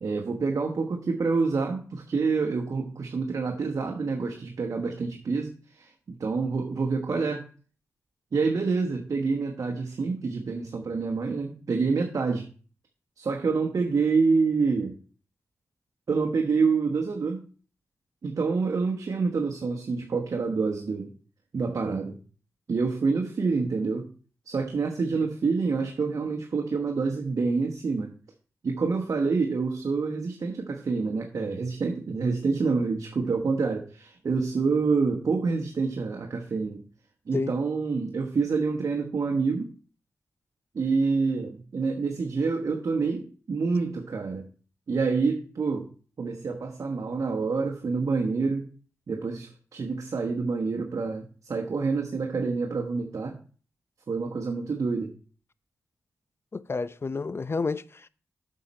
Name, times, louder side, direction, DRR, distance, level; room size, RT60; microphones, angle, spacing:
voice 1, 0.0-7.4 8.3-12.4 13.2-15.0 16.1-17.4 18.2-21.1 21.5-22.2 22.7-24.1 24.5-28.1 28.6-36.8 37.3-39.7 40.7-44.5 44.9-45.9 46.2-48.7 49.1-53.4 54.1-55.1, right 4 dB, 60° right, 1.2 m, -27 dB
voice 2, 56.5-58.1, left 4 dB, 40° left, 0.6 m, -30 dB
7.8 x 6.6 x 4.3 m
cardioid pair, 45°, 6 cm